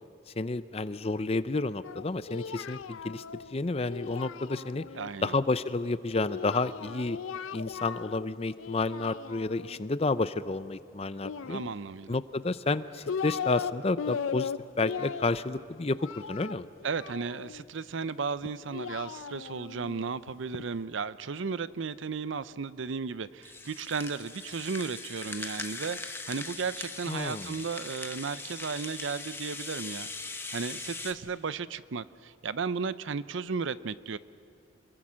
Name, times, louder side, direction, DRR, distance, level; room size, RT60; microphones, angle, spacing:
voice 1, 0.4-4.8 5.2-7.2 7.5-11.6 12.1-14.5 14.8-16.7 27.1-27.6, left 3 dB, 30° left, 14 dB, 0.5 m, -30 dB
Singing, 1.8-5.1 6.2-8.3 8.6-9.8 11.2-12.1 12.7-13.7 14.0-17.6 18.4-20.7, left 6 dB, 85° left, 0.5 m, -38 dB
voice 2, 4.9-5.3 11.5-12.2 16.8-30.1 30.5-34.2, right 5 dB, 70° right, 16 dB, 0.6 m, -34 dB
Rattle (instrument), 23.4-31.1, left 3 dB, 10° left, 1.0 m, -40 dB
26.5 x 22.0 x 6.3 m, 2.6 s
head